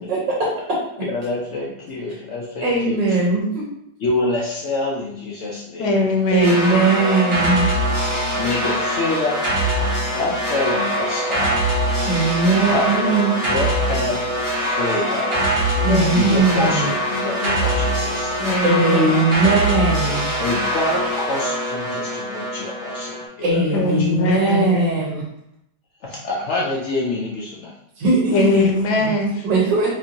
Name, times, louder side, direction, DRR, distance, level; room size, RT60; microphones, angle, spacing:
voice 1, 0.1-0.5 2.6-3.6 6.3-7.7 12.1-13.4 15.8-16.9 18.6-20.3 23.4-25.2 28.0-28.7 29.0-29.1 29.4-29.9, right 3 dB, 80° right, -5 dB, 1.5 m, -19 dB
voice 2, 1.0-3.0 4.0-5.9 8.3-9.4 10.1-11.6 12.7-12.9 13.4-14.2 14.5-15.4 16.1-18.3 20.4-24.1 26.0-27.7, left 2 dB, 90° left, -3 dB, 0.6 m, -26 dB
voice 3, 5.8-6.6 15.9-16.7 18.4-19.0 23.7-24.9 28.3-29.5, left 3 dB, 75° left, 1 dB, 1.2 m, -21 dB
sound 1, 6.4-23.2, equal, 35° right, 0.5 m, -23 dB
4.4 x 2.5 x 2.8 m, 0.78 s
omnidirectional pair, 1.9 m